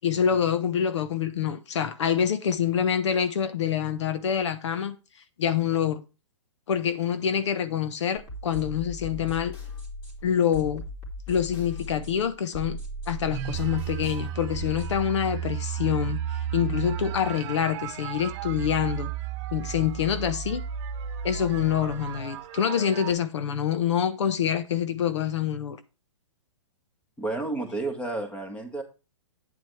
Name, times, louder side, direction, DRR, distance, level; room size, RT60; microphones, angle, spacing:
voice 1, 0.0-5.0 5.4-6.0 6.7-9.5 10.2-10.8 11.3-12.8 13.1-19.1 19.5-20.6 21.2-25.8, left 8 dB, 65° left, 1.0 m, -26 dB
sound 1, 8.1-15.1, equal, 30° left, 3.4 m, -38 dB
sound 2, 13.3-23.1, right 9 dB, 35° right, 1.3 m, -33 dB
voice 2, 27.2-28.8, right 2 dB, 10° left, 1.7 m, -31 dB
9.5 x 7.5 x 3.3 m
hypercardioid pair, 140°, 16 cm